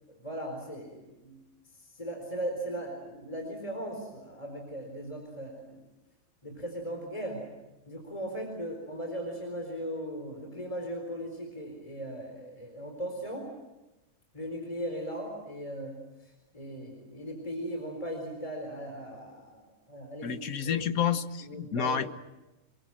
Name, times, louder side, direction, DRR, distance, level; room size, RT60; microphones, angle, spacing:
voice 1, 0.1-1.4 1.8-5.8 6.4-7.4 7.9-13.5 14.3-15.9 16.2-20.8 21.5-22.0, right 1 dB, 25° left, 2 dB, 4.4 m, -38 dB
voice 2, 20.2-22.1, left 8 dB, 85° left, 10 dB, 1.6 m, -30 dB
26.5 x 23.0 x 7.7 m, 1.0 s
omnidirectional pair, 1.5 m